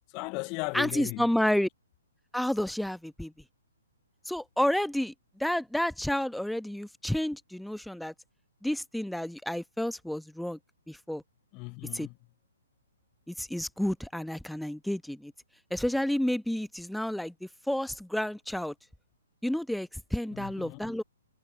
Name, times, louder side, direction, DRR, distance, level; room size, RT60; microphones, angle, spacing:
voice 1, 0.1-1.3 11.5-12.2 20.3-21.0, left 30 dB, 30° left, 1.1 m, -37 dB
voice 2, 0.7-1.7 2.3-3.3 4.3-5.1 5.4-8.1 8.6-10.6 10.9-11.2 11.9-12.1 13.3-15.3 15.7-18.7 19.4-21.0, left 1 dB, ahead, 1.0 m, -30 dB
figure-of-eight pair, 125°, 0 cm